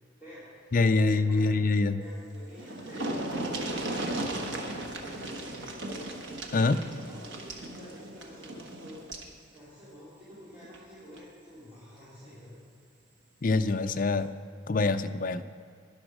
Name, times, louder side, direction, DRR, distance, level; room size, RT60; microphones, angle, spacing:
voice 1, 0.2-1.5 2.0-6.1 6.5-9.0 9.5-12.6, equal, 10° right, -13 dB, 3.6 m, -49 dB
voice 2, 0.7-2.0 6.5-6.8 13.4-14.3 14.7-15.4, left 3 dB, 45° left, 9 dB, 0.5 m, -25 dB
sound 1, 2.2-2.3 2.5-9.3 10.6-10.8 11.2-11.3, right 1 dB, 80° right, 1.3 m, -36 dB
12.5 x 11.0 x 4.9 m, 2.4 s
head